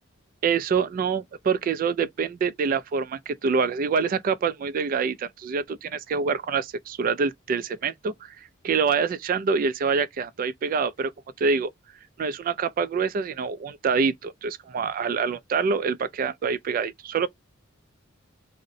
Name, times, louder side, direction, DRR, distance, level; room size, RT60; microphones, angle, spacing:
voice 1, 0.4-11.1 11.4-11.7 12.2-17.3, right 5 dB, 45° right, 0.3 m, -26 dB
2.5 x 2.1 x 3.7 m
head